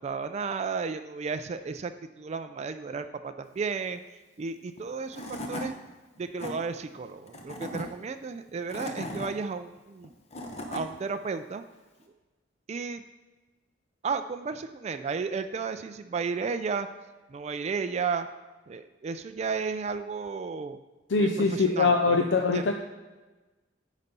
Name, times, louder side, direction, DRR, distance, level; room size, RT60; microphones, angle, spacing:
voice 1, 0.0-4.0 4.4-5.8 6.2-10.1 10.7-11.6 12.7-13.0 14.0-16.9 17.3-18.3 18.7-20.8 21.2-22.2 22.5-22.6, right 5 dB, 35° right, 9 dB, 0.3 m, -33 dB
Tools / Wood, 4.8-4.9 5.1-5.7 6.2-6.5 7.3-7.8 8.5-9.3 10.0-10.8, left 1 dB, 35° left, 0.9 m, -37 dB
voice 2, 21.1-22.7, left 4 dB, 75° left, 3 dB, 0.6 m, -23 dB
9.7 x 4.1 x 5.3 m, 1.2 s
head